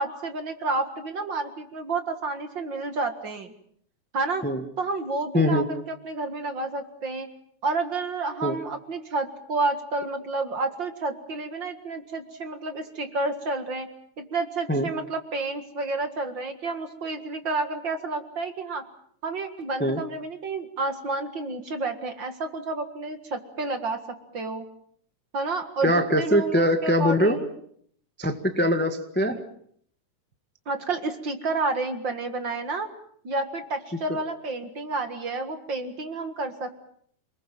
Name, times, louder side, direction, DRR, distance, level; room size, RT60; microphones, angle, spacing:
voice 1, 0.0-3.5 4.1-4.4 4.8-7.3 7.6-13.9 14.2-18.8 19.2-24.0 24.3-24.7 25.3-27.5 29.3-29.4 30.7-32.9 33.2-36.8, right 3 dB, 40° right, 7 dB, 2.2 m, -30 dB
voice 2, 5.3-5.7 8.4-8.6 14.7-14.9 19.8-20.0 25.8-27.4 28.2-29.4, equal, 5° left, 6 dB, 0.9 m, -22 dB
28.0 x 20.0 x 7.7 m, 0.65 s
omnidirectional pair, 3.5 m